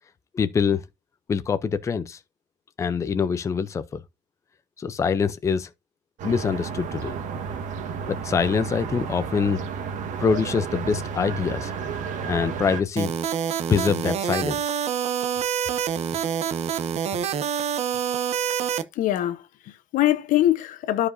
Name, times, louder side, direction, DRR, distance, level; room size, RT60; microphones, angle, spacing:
voice 1, 0.3-0.9 1.3-2.2 2.8-4.0 4.8-5.7 6.2-7.1 8.1-9.6 10.2-11.7 12.3-13.1 13.7-14.7, left 6 dB, 20° left, 0.5 m, -24 dB
sound 1, 6.2-12.8, right 6 dB, 70° right, 1.4 m, -32 dB
sound 2, 13.0-18.8, right 8 dB, 55° right, 0.7 m, -26 dB
voice 2, 18.9-21.1, left 13 dB, 85° left, 1.0 m, -23 dB
13.0 x 4.8 x 2.6 m
cardioid pair, 170°, 13 cm